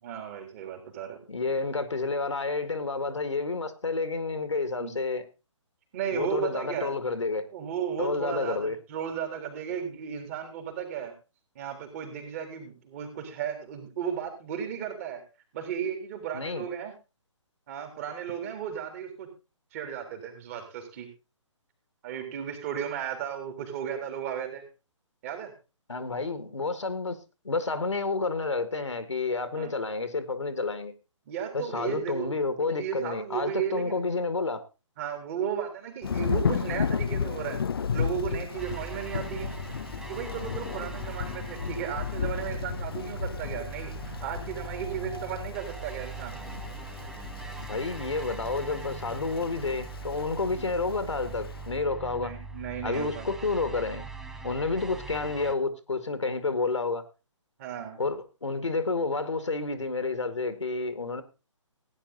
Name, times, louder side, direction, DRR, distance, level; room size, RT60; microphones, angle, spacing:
voice 1, 0.0-1.2 4.8-4.9 5.9-6.9 7.5-11.1 11.6-15.2 15.5-16.9 17.7-19.3 19.7-21.1 22.0-24.6 25.2-25.5 29.6-29.7 31.3-32.3 32.6-34.0 35.0-39.5 40.1-46.4 50.5-50.6 52.1-53.3 57.6-58.0, right 8 dB, 30° right, 3.6 m, -35 dB
voice 2, 1.3-5.3 6.1-7.5 8.0-8.8 16.3-16.7 25.9-27.2 27.4-30.9 31.5-34.6 47.6-52.3 52.8-54.1 54.4-57.1 58.0-61.2, left 3 dB, 70° left, 1.9 m, -30 dB
Thunder / Rain, 36.0-51.6, left 6 dB, 50° left, 0.6 m, -34 dB
sound 1, 38.6-55.5, right 4 dB, 5° right, 0.5 m, -41 dB
17.0 x 9.9 x 4.0 m
figure-of-eight pair, 135°, 16 cm